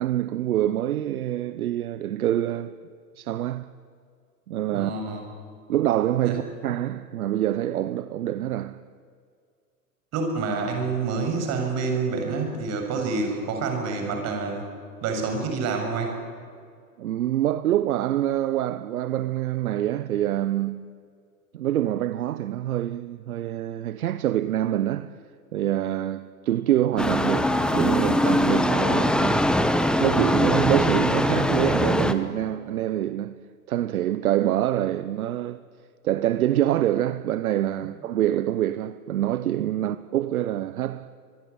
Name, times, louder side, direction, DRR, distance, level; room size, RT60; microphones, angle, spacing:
voice 1, 0.0-2.7 3.2-3.7 4.5-4.9 5.7-8.8 17.0-20.8 21.5-25.1 25.5-29.6 30.0-33.3 33.7-35.6 36.0-41.1, right 12 dB, 65° right, 1.0 m, -25 dB
voice 2, 4.7-5.3 6.2-6.4 10.1-14.7 15.0-16.2, right 4 dB, 35° right, 7.0 m, -27 dB
sound 1, 27.0-32.1, left 1 dB, ahead, 1.1 m, -22 dB
25.0 x 21.5 x 9.9 m
hypercardioid pair, 110°, 47 cm